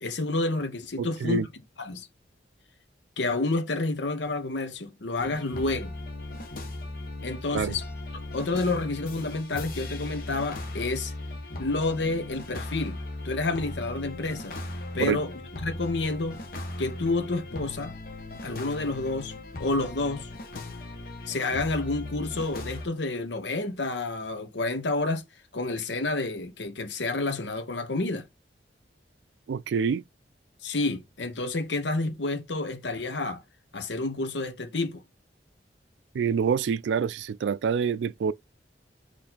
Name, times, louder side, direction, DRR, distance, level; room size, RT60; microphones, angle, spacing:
voice 1, 0.0-1.5 1.8-2.1 3.2-5.9 7.2-7.8 8.3-11.1 11.6-13.0 13.2-14.6 14.9-15.3 15.6-16.4 16.8-17.9 18.4-19.3 19.6-20.3 21.2-25.2 25.5-28.3 30.6-33.4 33.7-35.0, left 2 dB, 90° left, 1.0 m, -29 dB
voice 2, 1.0-1.5 7.5-7.8 15.0-15.2 29.5-30.0 36.1-38.3, right 6 dB, 85° right, 0.3 m, -26 dB
sound 1, 5.2-22.9, left 2 dB, 55° left, 1.0 m, -38 dB
4.4 x 3.1 x 3.9 m
head